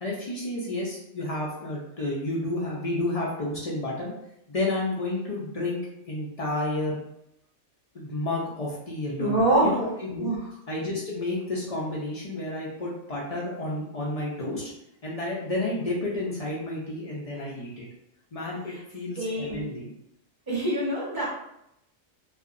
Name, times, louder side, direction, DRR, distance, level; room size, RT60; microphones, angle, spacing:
voice 1, 0.0-4.1 4.5-5.8 6.1-7.0 7.9-10.3 10.7-14.7 15.0-17.9 18.3-19.9, left 2 dB, 55° left, -5 dB, 0.4 m, -31 dB
voice 2, 9.2-9.7 10.2-10.5 19.2-19.6 20.5-21.3, right 2 dB, 20° right, -6 dB, 0.8 m, -25 dB
2.7 x 2.4 x 2.5 m, 0.79 s
omnidirectional pair, 1.3 m